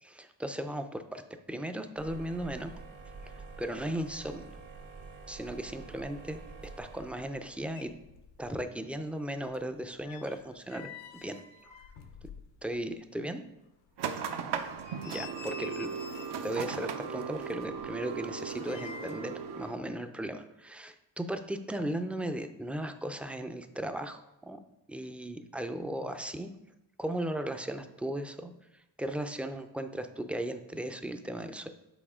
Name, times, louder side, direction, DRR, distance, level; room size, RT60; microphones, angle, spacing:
voice 1, 0.0-1.2 1.5-2.7 3.2-4.5 5.3-6.4 6.8-7.9 8.4-10.9 11.2-11.4 12.6-13.4 15.0-15.9 16.4-24.6 24.9-26.5 27.0-28.5 29.0-31.7, right 1 dB, 5° right, 7 dB, 0.5 m, -36 dB
sound 1, 2.0-7.9, right 4 dB, 90° right, 1.4 m, -48 dB
sound 2, 7.4-7.5 7.7-8.7 8.9-12.9 13.2-13.3 13.9-14.0 14.5-16.5 17.3-19.3 19.6-19.8, left 6 dB, 75° left, 0.9 m, -49 dB
sound 3, 14.0-19.7, right 6 dB, 60° right, 0.8 m, -37 dB
7.2 x 4.2 x 3.7 m, 0.91 s
supercardioid pair, 65°, 46 cm